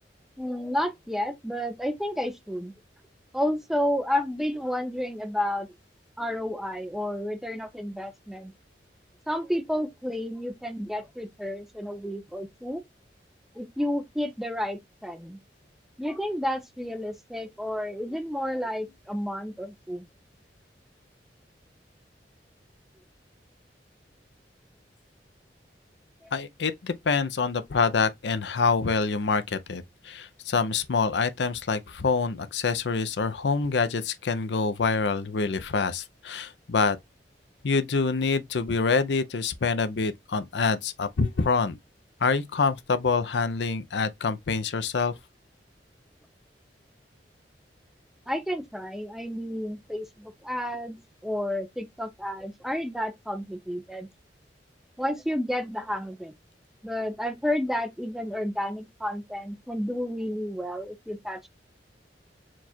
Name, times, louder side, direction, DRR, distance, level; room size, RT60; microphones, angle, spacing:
voice 1, 0.4-2.7 3.3-5.7 6.2-8.5 9.3-12.8 13.6-15.4 16.0-20.1 26.2-26.3 48.3-51.0 51.2-54.1 55.0-56.3 56.8-61.5, equal, ahead, 0.5 m, -31 dB
voice 2, 26.3-37.0 37.6-41.8 42.2-45.2, left 4 dB, 80° left, 0.6 m, -26 dB
4.6 x 2.4 x 4.2 m
head